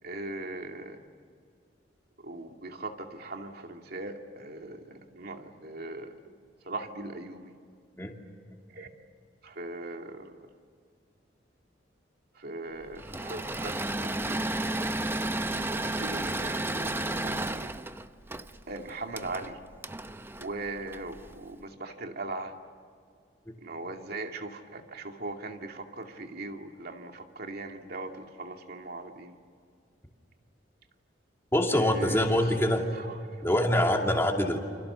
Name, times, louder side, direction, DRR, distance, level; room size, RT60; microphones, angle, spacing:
voice 1, 0.0-1.0 2.2-6.4 6.6-7.5 8.7-8.9 9.4-10.5 12.3-14.5 15.5-17.7 18.7-19.6 20.4-22.5 23.6-29.4 31.7-33.5, right 2 dB, 55° right, 4 dB, 2.4 m, -40 dB
Engine / Mechanisms, 13.0-21.4, right 2 dB, 10° right, 0.7 m, -33 dB
voice 2, 31.5-32.8 33.4-34.6, left 1 dB, 15° left, 1 dB, 2.7 m, -24 dB
29.5 x 26.5 x 7.0 m, 2.2 s
head